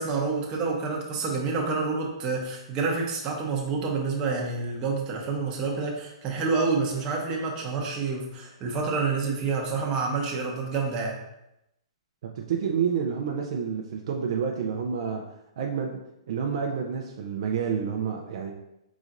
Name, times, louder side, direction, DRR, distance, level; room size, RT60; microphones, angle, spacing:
voice 1, 0.0-11.2, right 4 dB, 25° right, -1 dB, 0.9 m, -28 dB
voice 2, 12.2-15.2 15.6-18.5, right 7 dB, 60° right, 1 dB, 0.5 m, -29 dB
4.9 x 4.1 x 2.5 m, 0.86 s
hypercardioid pair, 140°, 3 cm